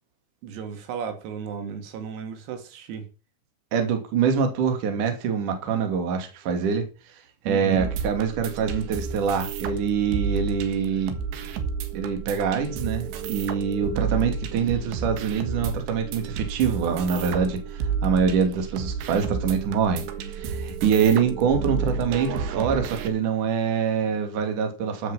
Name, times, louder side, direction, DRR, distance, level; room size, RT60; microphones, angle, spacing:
voice 1, 0.4-3.1 7.5-7.9 14.0-14.1, right 6 dB, 90° right, 5.3 m, -34 dB
voice 2, 3.7-6.9 7.5-11.1 11.9-20.0 20.3-25.1, right 6 dB, 45° right, 3.4 m, -25 dB
sound 1, 7.7-23.1, right 6 dB, 65° right, 3.5 m, -31 dB
12.5 x 9.9 x 5.7 m
omnidirectional pair, 6.0 m